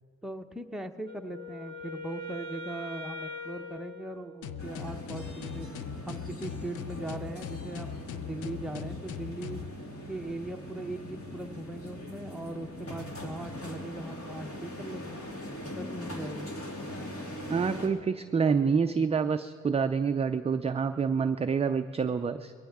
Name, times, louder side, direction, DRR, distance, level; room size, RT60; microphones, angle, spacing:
voice 1, 0.2-5.7 6.1-9.6 10.1-15.2 15.8-16.5, right 1 dB, ahead, 4 dB, 0.9 m, -39 dB
Wind instrument woodwind instrument, 1.0-4.9, left 1 dB, 15° left, 2.4 m, -42 dB
sound 1, 4.4-9.7, left 9 dB, 80° left, 0.7 m, -40 dB
sound 2, 4.6-17.9, equal, 50° left, 2.7 m, -41 dB
voice 2, 17.5-22.5, right 5 dB, 20° right, 8 dB, 0.4 m, -27 dB
22.0 x 16.5 x 3.6 m, 2.3 s
cardioid pair, 90°, 30 cm